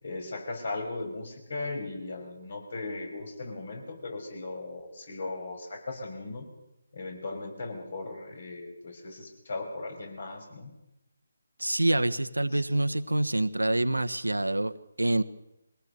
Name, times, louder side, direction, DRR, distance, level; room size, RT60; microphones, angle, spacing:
voice 1, 0.0-6.4 6.9-10.7 12.5-12.6, left 3 dB, 55° left, 4 dB, 5.9 m, -37 dB
voice 2, 11.6-15.2, right 1 dB, 90° right, 10 dB, 1.1 m, -26 dB
22.5 x 18.0 x 6.7 m, 0.89 s
figure-of-eight pair, 150°, 0 cm